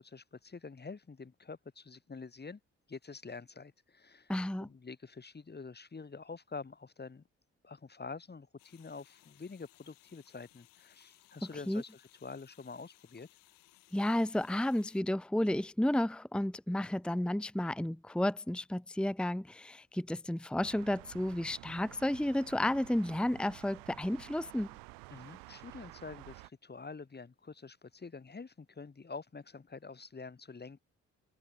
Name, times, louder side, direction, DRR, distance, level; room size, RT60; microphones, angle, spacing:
voice 1, 0.0-2.6 2.9-4.3 4.6-7.2 7.6-13.3 25.1-30.8, left 4 dB, 30° left, 2.1 m, -47 dB
voice 2, 4.3-4.7 11.7-11.8 13.9-24.7, left 1 dB, 5° left, 1.0 m, -32 dB
sound 1, 8.6-15.0, left 19 dB, 80° left, 5.1 m, -64 dB
sound 2, 20.6-26.5, right 32 dB, 85° right, 3.6 m, -52 dB
open air
hypercardioid pair, 50°, 33 cm